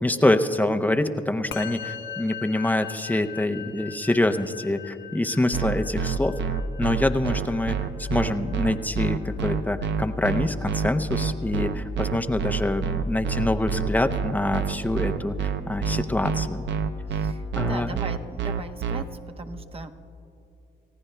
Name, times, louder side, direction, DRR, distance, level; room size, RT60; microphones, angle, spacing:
voice 1, 0.0-6.3 6.8-16.7 17.5-18.0, left 1 dB, 10° left, 7 dB, 0.7 m, -25 dB
Musical instrument, 1.5-11.0, left 8 dB, 70° left, 1.1 m, -41 dB
sound 1, 5.5-19.0, right 6 dB, 65° right, 0.7 m, -27 dB
voice 2, 17.1-19.1 19.4-19.9, right 3 dB, 30° right, 6 dB, 1.0 m, -38 dB
29.0 x 15.5 x 2.2 m, 2.8 s
cardioid pair, 90°, 20 cm